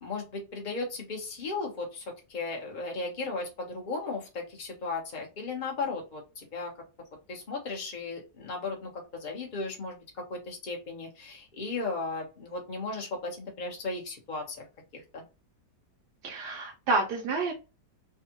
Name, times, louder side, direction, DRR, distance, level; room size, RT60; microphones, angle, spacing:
voice 1, 0.0-6.7 7.3-14.7 14.9-15.2, left 3 dB, 35° left, 0 dB, 0.9 m, -36 dB
voice 2, 16.2-17.5, right 3 dB, 75° right, 1 dB, 1.3 m, -29 dB
3.5 x 2.4 x 2.9 m, 0.29 s
omnidirectional pair, 1.9 m